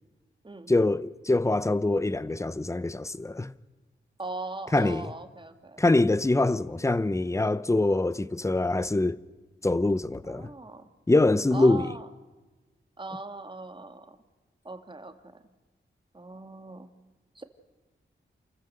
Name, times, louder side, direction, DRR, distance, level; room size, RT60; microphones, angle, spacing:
voice 1, 0.7-3.5 4.7-5.1 5.8-9.2 9.6-10.5 11.1-11.9, left 2 dB, 15° left, 0.7 m, -24 dB
voice 2, 4.2-5.8 10.2-10.9 11.5-12.1 13.0-14.2 14.6-15.4 16.1-16.9 17.4-17.5, right 2 dB, 25° right, 1.7 m, -40 dB
28.5 x 14.5 x 6.6 m
wide cardioid pair, 85°, 20 cm